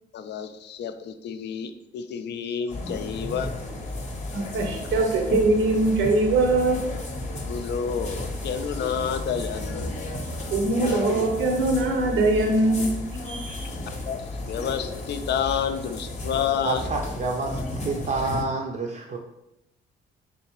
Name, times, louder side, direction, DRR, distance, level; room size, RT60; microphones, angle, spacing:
voice 1, 0.1-3.5 7.5-10.0 13.9-16.8, left 7 dB, 60° left, 9 dB, 0.4 m, -30 dB
sound 1, 2.7-18.4, left 2 dB, 35° left, 0.8 m, -33 dB
voice 2, 4.3-6.8 10.5-12.9, right 2 dB, 80° right, 3 dB, 0.8 m, -22 dB
voice 3, 16.6-19.2, right 3 dB, 40° right, -1 dB, 0.5 m, -29 dB
3.9 x 3.5 x 3.0 m, 0.88 s
cardioid pair, 90°, 20 cm